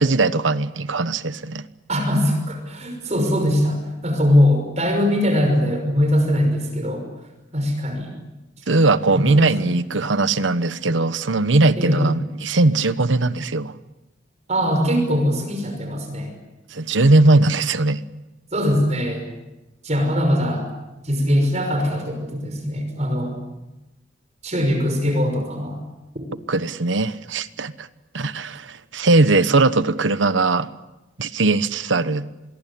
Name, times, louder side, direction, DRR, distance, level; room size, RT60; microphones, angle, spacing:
voice 1, 0.0-1.6 8.7-13.8 16.7-18.0 26.5-27.9 28.1-30.7 31.2-32.3, right 2 dB, 80° right, 14 dB, 1.1 m, -19 dB
voice 2, 1.9-7.0 7.5-8.1 9.1-9.5 11.8-12.2 14.5-16.3 18.5-19.2 19.8-20.7 21.0-23.3 24.4-25.8, equal, 35° right, 4 dB, 5.8 m, -21 dB
26.0 x 22.0 x 8.6 m, 1.0 s
head